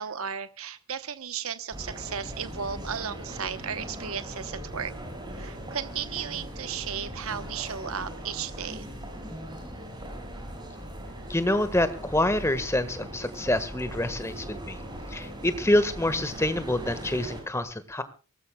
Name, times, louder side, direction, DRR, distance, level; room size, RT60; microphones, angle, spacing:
voice 1, 0.0-4.9 5.3-8.9, right 7 dB, 75° right, 11 dB, 1.0 m, -35 dB
sound 1, 1.7-17.4, equal, 20° right, 5.7 m, -39 dB
voice 2, 11.3-14.8 15.1-18.0, left 1 dB, 10° left, 11 dB, 1.5 m, -26 dB
23.5 x 18.5 x 2.3 m, 0.33 s
head